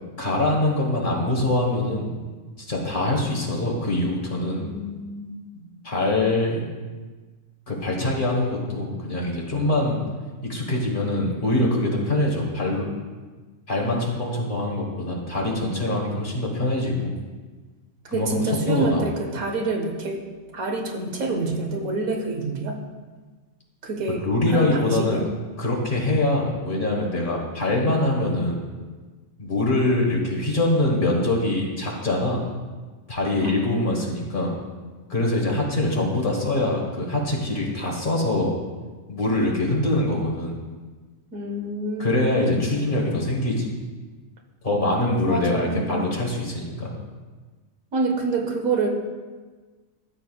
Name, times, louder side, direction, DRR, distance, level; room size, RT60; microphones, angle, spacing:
voice 1, 0.2-2.2 2.6-4.7 5.8-6.7 7.7-10.0 10.4-12.9 13.7-17.1 18.1-19.0 24.1-25.2 25.6-28.7 29.4-32.4 33.1-34.5 35.1-38.5 39.1-40.6 42.0-43.7 44.6-46.9, left 1 dB, 40° left, -1 dB, 1.5 m, -24 dB
voice 2, 4.6-5.6 18.1-20.2 20.5-22.8 23.8-25.2 33.4-34.2 41.3-42.8 45.3-46.0 47.9-48.9, right 3 dB, 85° right, 2 dB, 1.5 m, -28 dB
13.5 x 6.8 x 2.3 m, 1.4 s
omnidirectional pair, 1.4 m